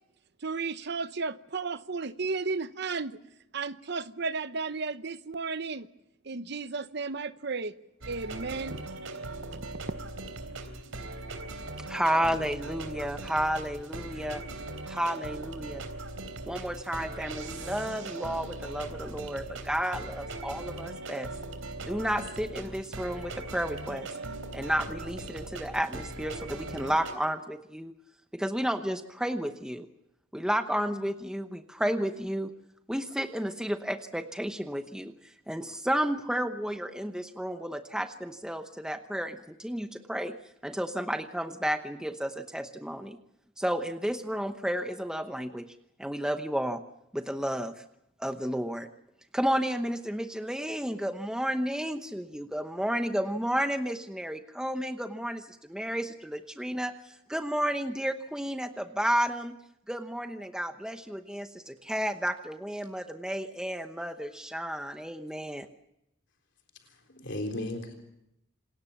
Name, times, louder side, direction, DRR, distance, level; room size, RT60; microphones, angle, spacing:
voice 1, 0.4-3.2 3.5-5.9 6.2-7.7 8.1-8.8 9.5-9.6, right 4 dB, 55° right, 0.9 m, -33 dB
sound 1, 8.0-27.1, right 2 dB, 85° right, 3.5 m, -40 dB
voice 2, 11.9-14.4 14.9-15.9 16.5-21.3 21.8-24.1 24.5-27.9 28.3-29.9 30.3-32.5 32.9-40.3 40.6-43.2 43.6-45.7 46.0-46.8 47.1-47.7 48.2-48.9 49.3-59.6 59.9-65.7, equal, 5° right, 0.9 m, -32 dB
voice 3, 66.8-67.9, left 1 dB, 60° left, 3.8 m, -36 dB
27.5 x 20.0 x 7.2 m
head